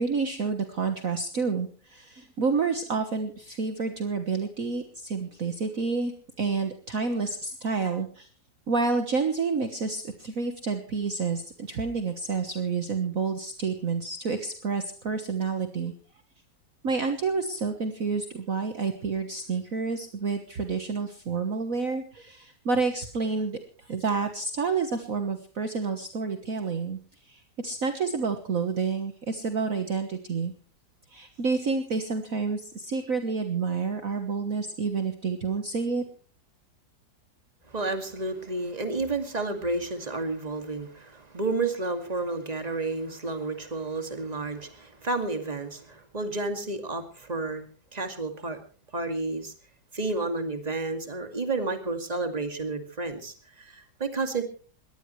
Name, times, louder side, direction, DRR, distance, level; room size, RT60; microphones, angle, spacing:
voice 1, 0.0-6.1 6.4-8.3 8.7-15.9 16.8-27.0 27.3-30.5 31.1-36.0, right 4 dB, 50° right, 6 dB, 1.7 m, -29 dB
voice 2, 37.7-47.6 47.9-48.6 48.9-49.5 49.9-54.4, right 3 dB, 20° right, 6 dB, 2.3 m, -31 dB
22.0 x 18.5 x 3.2 m, 0.40 s
omnidirectional pair, 2.0 m